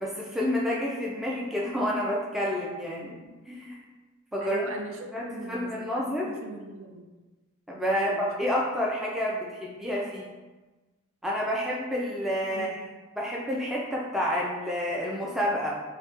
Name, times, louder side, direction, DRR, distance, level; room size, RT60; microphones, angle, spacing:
voice 1, 0.0-3.2 3.5-3.8 4.3-4.7 5.1-6.3 7.7-10.3 11.2-12.8 13.2-15.7, equal, ahead, -4 dB, 0.3 m, -29 dB
voice 2, 4.4-7.1 7.9-8.3 12.5-12.9, right 4 dB, 75° right, 3 dB, 0.4 m, -40 dB
4.0 x 2.2 x 2.4 m, 1.2 s
head